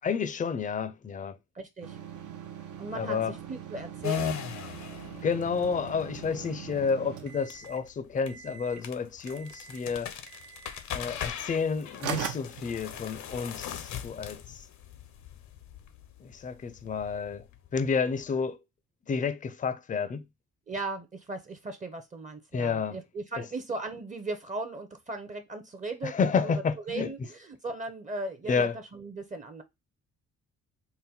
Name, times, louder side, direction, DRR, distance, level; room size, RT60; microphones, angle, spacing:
voice 1, 0.0-1.4 2.9-3.4 5.2-10.1 10.9-14.7 16.2-17.5 17.7-18.6 19.1-20.2 22.5-23.0 26.0-27.1 28.5-28.8, left 5 dB, 25° left, 0.4 m, -30 dB
voice 2, 1.5-2.0 2.8-4.4 20.7-26.1 26.4-29.6, right 2 dB, 25° right, 0.6 m, -37 dB
sound 1, 1.8-7.9 8.3-8.9 9.3-9.9 10.3-10.8 11.6-11.7 12.0-13.3, right 9 dB, 80° right, 0.7 m, -41 dB
sound 2, 4.0-18.3, left 8 dB, 70° left, 0.7 m, -40 dB
3.9 x 2.1 x 4.1 m
cardioid pair, 90°, 30 cm